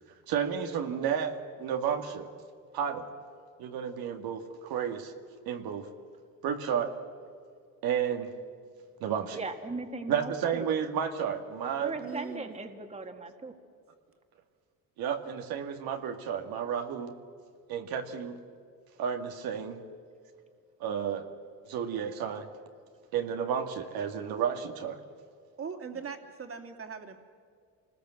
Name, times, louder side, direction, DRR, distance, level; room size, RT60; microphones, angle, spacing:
voice 1, 0.3-2.3 2.7-3.1 3.6-5.1 5.5-5.9 6.4-6.9 7.8-8.3 9.0-9.4 10.1-11.9 15.0-17.2 17.7-18.4 19.0-19.8 20.8-21.3 21.7-22.5 23.1-25.0, right 8 dB, 80° right, 4 dB, 2.2 m, -32 dB
voice 2, 9.3-10.7 11.8-13.5 25.9-26.1, right 3 dB, 20° right, 5 dB, 1.9 m, -38 dB
voice 3, 12.0-12.6 25.6-27.1, right 6 dB, 40° right, 5 dB, 2.7 m, -40 dB
27.5 x 20.5 x 7.9 m, 2.2 s
cardioid pair, 120°, 36 cm